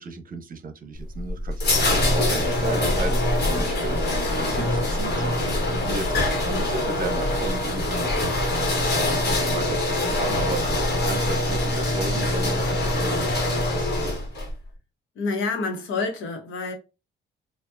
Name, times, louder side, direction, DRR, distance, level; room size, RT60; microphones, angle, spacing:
voice 1, 0.0-3.1 3.5-4.0 4.3-8.1 8.5-10.6 10.9-14.1, right 3 dB, 45° right, 0.8 m, -35 dB
sound 1, 0.9-14.5, left 1 dB, 55° left, 1.4 m, -24 dB
voice 2, 15.1-16.7, left 3 dB, 80° left, 1.1 m, -28 dB
4.5 x 2.4 x 2.6 m
cardioid pair, 90°, 20 cm